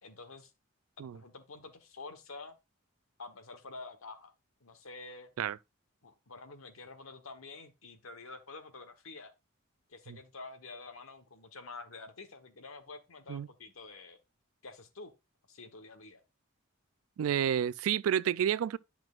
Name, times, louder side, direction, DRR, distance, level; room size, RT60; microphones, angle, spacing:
voice 1, 0.0-0.5 1.1-2.6 3.2-4.3 4.6-5.3 6.0-9.3 9.9-14.2 14.6-15.1 15.5-16.2, left 3 dB, 85° left, 1.2 m, -48 dB
voice 2, 17.2-18.8, right 9 dB, 85° right, 0.3 m, -30 dB
11.0 x 6.0 x 2.4 m
head